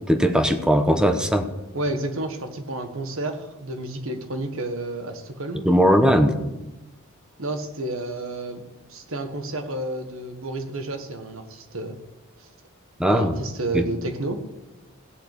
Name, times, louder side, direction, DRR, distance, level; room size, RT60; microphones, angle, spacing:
voice 1, 0.1-1.5 5.6-6.4 13.0-13.4 13.7-13.9, equal, 5° right, 7 dB, 1.0 m, -19 dB
voice 2, 1.7-5.7 7.4-8.6 8.9-12.0 12.4-12.5 13.1-14.4, right 2 dB, 65° right, 7 dB, 1.6 m, -31 dB
16.0 x 6.7 x 8.3 m, 1.0 s
head